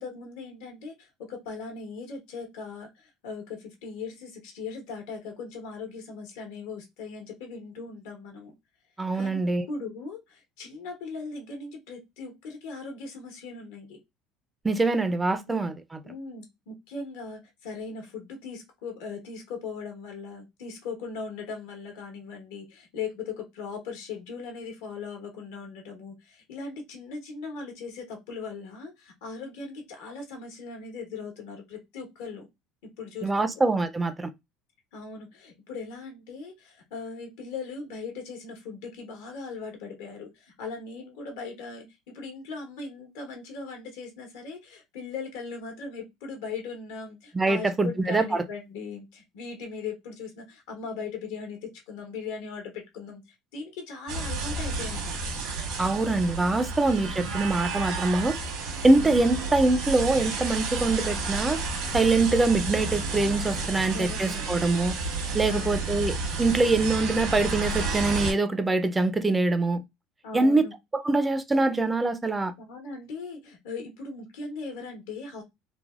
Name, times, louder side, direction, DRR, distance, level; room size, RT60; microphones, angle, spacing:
voice 1, 0.0-8.5 9.1-14.0 15.5-15.6 16.0-32.5 32.8-33.5 34.9-53.2 53.5-55.2 58.9-59.1 63.7-64.5 65.5-65.8 70.2-70.7 72.6-75.4, left 4 dB, 85° left, 1.0 m, -39 dB
voice 2, 9.0-9.7 14.6-15.7 33.2-34.3 47.3-48.4 55.8-58.4 58.8-61.6 61.9-64.9 65.3-69.8 70.3-70.7 70.9-72.5, right 2 dB, 15° right, 0.4 m, -24 dB
sound 1, 54.1-68.3, right 3 dB, 75° right, 1.2 m, -31 dB
3.2 x 2.0 x 2.3 m
supercardioid pair, 110°, 0 cm